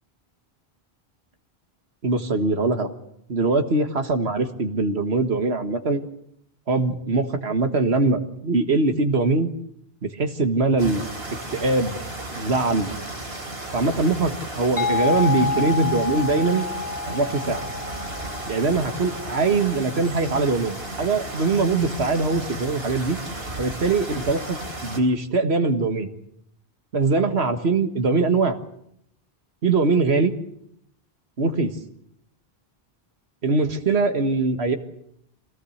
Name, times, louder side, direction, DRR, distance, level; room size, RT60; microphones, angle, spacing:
voice 1, 2.0-2.9 3.3-6.0 6.7-9.5 10.0-11.0 11.5-12.0 12.4-12.9 13.7-16.6 17.1-17.7 18.5-23.2 23.6-26.1 26.9-28.6 29.6-30.3 31.4-31.7 33.4-34.8, right 3 dB, 90° right, 8 dB, 1.9 m, -22 dB
sound 1, 10.8-25.0, right 1 dB, 70° right, 3.8 m, -34 dB
sound 2, 14.8-20.2, left 4 dB, 5° right, 2.4 m, -29 dB
25.0 x 17.5 x 8.0 m, 0.73 s
omnidirectional pair, 1.0 m